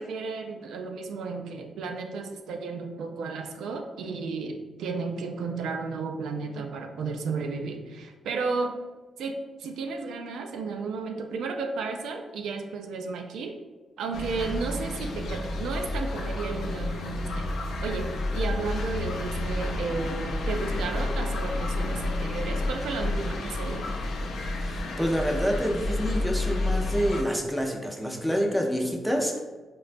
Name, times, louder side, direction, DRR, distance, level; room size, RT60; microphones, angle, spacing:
voice 1, 0.0-8.8 9.2-13.6 14.0-17.5 17.8-23.9, right 4 dB, 85° right, 4 dB, 0.3 m, -33 dB
sound 1, 14.1-27.2, left 2 dB, 70° left, 0.4 m, -30 dB
voice 2, 24.5-29.4, equal, ahead, 1 dB, 0.4 m, -27 dB
3.8 x 2.2 x 2.5 m, 1.3 s
cardioid pair, 125°, 0 cm